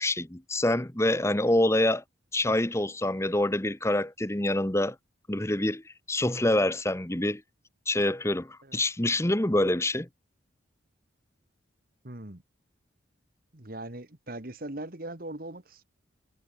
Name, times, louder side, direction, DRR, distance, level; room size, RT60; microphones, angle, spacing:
voice 1, 0.0-2.0 2.3-5.0 5.3-7.4 7.9-10.1, left 1 dB, 15° left, 1.1 m, -26 dB
voice 2, 12.0-12.4 13.5-15.8, right 1 dB, 45° right, 2.0 m, -40 dB
head